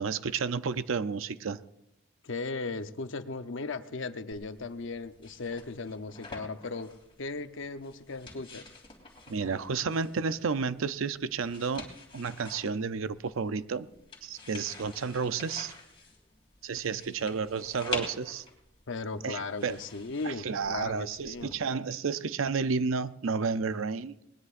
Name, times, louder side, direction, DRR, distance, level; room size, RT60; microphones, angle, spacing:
voice 1, 0.0-1.6 9.3-11.9 12.1-13.9 14.2-15.7 16.6-18.4 19.2-19.8 20.2-24.1, right 5 dB, 70° right, 0.5 m, -31 dB
voice 2, 2.2-6.9 7.2-8.7 18.9-21.5, left 3 dB, 60° left, 0.8 m, -37 dB
sound 1, 4.3-21.5, left 4 dB, 25° left, 3.1 m, -47 dB
21.0 x 19.5 x 2.5 m
head